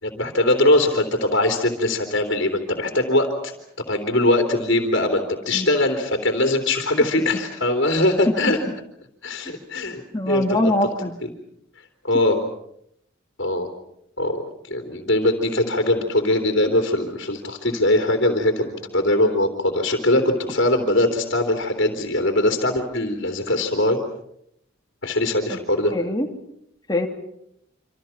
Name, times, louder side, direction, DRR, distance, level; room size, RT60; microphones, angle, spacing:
voice 1, 0.0-3.5 3.9-8.6 9.2-10.0 10.3-10.7 11.2-11.3 12.0-12.4 13.4-13.7 14.2-24.0 25.0-25.9, left 1 dB, 60° left, 4 dB, 3.3 m, -21 dB
voice 2, 10.1-11.2 25.5-25.6 25.9-26.3 26.9-27.1, left 1 dB, 20° left, 2 dB, 2.9 m, -23 dB
27.5 x 26.5 x 5.9 m, 0.75 s
head